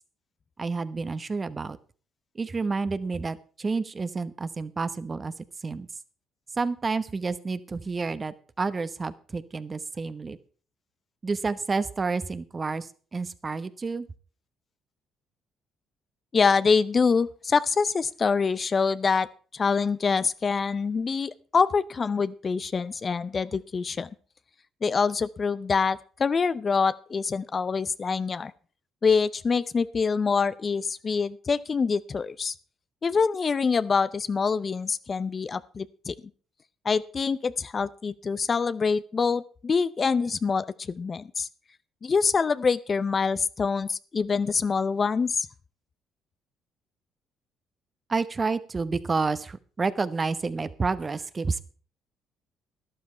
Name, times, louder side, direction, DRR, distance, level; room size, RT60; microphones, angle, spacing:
voice 1, 0.6-1.8 2.3-5.3 5.6-5.9 6.5-10.4 11.2-14.1 48.1-51.6, right 4 dB, 35° right, 14 dB, 1.0 m, -29 dB
voice 2, 16.3-19.3 19.5-24.1 24.8-28.5 29.0-32.5 33.0-36.1 36.8-41.5 42.0-45.5, left 5 dB, 40° left, 16 dB, 0.6 m, -25 dB
12.5 x 11.5 x 4.4 m, 0.40 s
hypercardioid pair, 55°, 0 cm